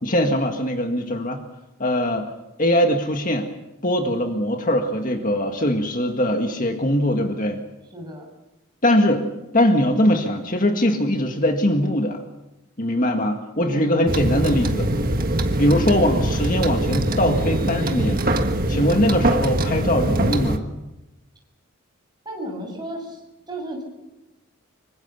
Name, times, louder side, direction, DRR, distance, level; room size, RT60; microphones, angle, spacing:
voice 1, 0.0-1.4 1.8-2.3 2.6-3.5 3.8-7.6 8.8-9.2 9.5-12.2 12.8-14.9 15.6-18.2 18.7-20.6, left 1 dB, 35° left, 4 dB, 1.9 m, -21 dB
voice 2, 7.9-8.3 13.7-14.0 22.3-23.1 23.5-23.8, right 1 dB, 20° right, 1 dB, 6.8 m, -33 dB
sound 1, 14.1-20.6, right 1 dB, 40° right, 1.6 m, -22 dB
25.5 x 24.5 x 6.9 m, 0.98 s
head